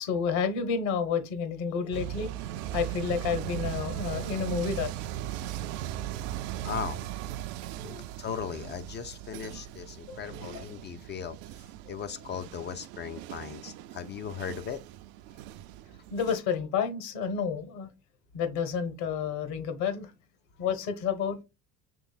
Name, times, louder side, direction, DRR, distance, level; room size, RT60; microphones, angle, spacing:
voice 1, 0.0-2.3 2.7-4.9 6.1-6.2 7.8-8.1 10.1-10.6 16.1-17.9 18.3-20.1 20.6-21.4, left 6 dB, 65° left, 1.2 m, -30 dB
sound 1, 1.9-16.4, right 13 dB, 65° right, 0.5 m, -38 dB
voice 2, 6.6-7.0 8.2-14.8, left 7 dB, 25° left, 0.3 m, -38 dB
6.0 x 3.1 x 2.4 m
hypercardioid pair, 70°, 47 cm